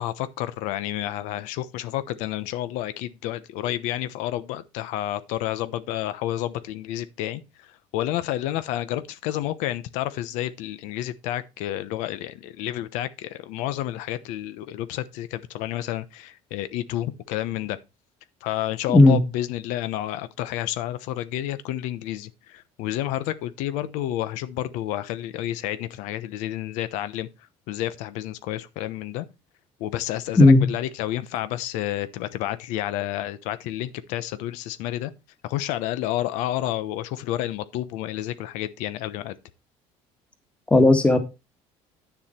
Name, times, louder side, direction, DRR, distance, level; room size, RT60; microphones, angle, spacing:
voice 1, 0.0-17.8 18.4-27.3 27.7-29.3 29.8-35.1 35.4-39.4, left 13 dB, 85° left, 1.0 m, -30 dB
voice 2, 18.9-19.2 30.4-30.6 40.7-41.2, left 2 dB, 10° left, 1.6 m, -14 dB
9.8 x 7.1 x 4.4 m
cardioid pair, 150°, 12 cm